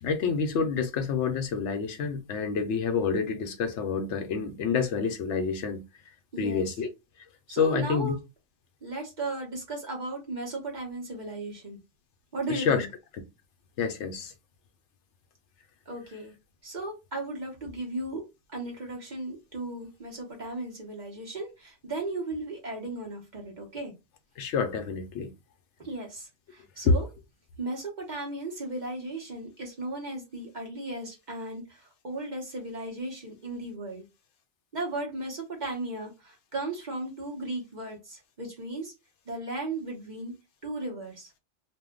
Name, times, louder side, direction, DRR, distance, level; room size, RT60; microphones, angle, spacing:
voice 1, 0.0-5.8 6.4-6.9 7.6-8.1 12.5-12.9 13.8-14.3 24.4-25.3 26.8-26.9, left 5 dB, 70° left, 0.8 m, -28 dB
voice 2, 6.3-6.7 7.5-8.2 8.8-11.8 12.3-12.9 15.9-16.3 16.6-18.2 18.5-23.9 25.8-27.1 27.6-34.0 34.7-38.9 39.3-40.3 40.6-41.3, right 2 dB, 40° right, 0.9 m, -36 dB
2.6 x 2.1 x 3.6 m
omnidirectional pair, 1.3 m